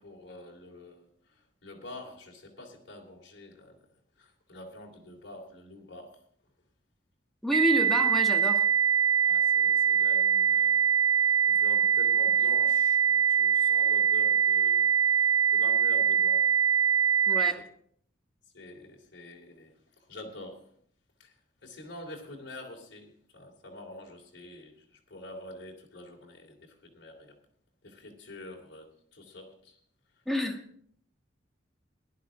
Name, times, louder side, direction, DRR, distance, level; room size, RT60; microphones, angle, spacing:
voice 1, 0.0-3.8 4.2-6.2 9.2-16.5 17.6-17.7 18.5-20.7 21.2-27.4 27.8-29.8, left 1 dB, 60° left, -1 dB, 2.9 m, -47 dB
voice 2, 7.4-8.7 17.3-17.6 30.2-30.6, equal, ahead, 1 dB, 1.4 m, -29 dB
sound 1, 7.5-17.5, right 7 dB, 90° right, 0.6 m, -23 dB
18.0 x 11.0 x 3.8 m, 0.63 s
head